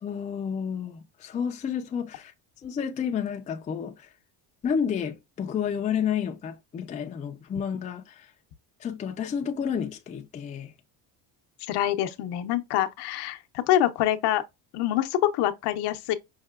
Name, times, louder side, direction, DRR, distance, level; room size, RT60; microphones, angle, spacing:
voice 1, 0.0-2.3 2.6-4.1 4.6-8.3 8.8-10.7, left 7 dB, 20° left, 0.4 m, -30 dB
voice 2, 11.7-13.4 13.7-14.4 14.7-16.1, left 12 dB, 70° left, 0.7 m, -25 dB
5.6 x 2.7 x 2.3 m
cardioid pair, 150°, 42 cm